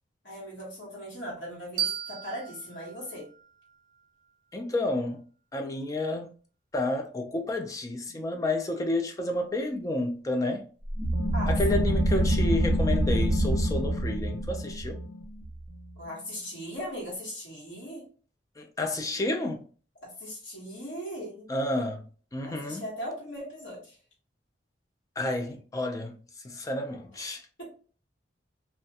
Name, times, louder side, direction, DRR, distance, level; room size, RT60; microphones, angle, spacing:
voice 1, 0.2-3.3 11.3-11.8 16.0-18.0 20.0-21.5 22.4-24.0 27.6-27.7, equal, 80° left, 1.2 m, -39 dB
sound 1, 1.8-4.6, right 9 dB, 45° right, 0.5 m, -36 dB
voice 2, 4.5-5.2 5.5-6.3 6.7-10.6 11.5-15.0 18.6-19.7 21.5-22.0 22.3-22.8 25.2-26.2 26.4-27.4, left 2 dB, 20° left, 0.3 m, -30 dB
sound 2, 10.9-16.2, right 1 dB, 15° right, 0.8 m, -26 dB
2.4 x 2.1 x 2.7 m
head